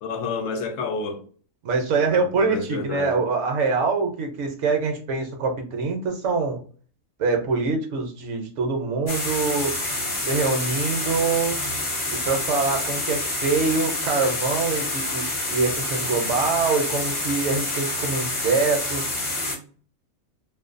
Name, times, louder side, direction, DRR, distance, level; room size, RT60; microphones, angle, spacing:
voice 1, 0.0-1.2 2.0-3.2, left 4 dB, 70° left, 0.9 m, -30 dB
voice 2, 1.6-6.6 7.2-9.7 10.2-11.6 12.1-19.2, right 4 dB, 65° right, 0.9 m, -24 dB
sound 1, 9.1-19.6, left 2 dB, 35° left, 0.5 m, -27 dB
2.5 x 2.2 x 2.4 m
omnidirectional pair, 1.4 m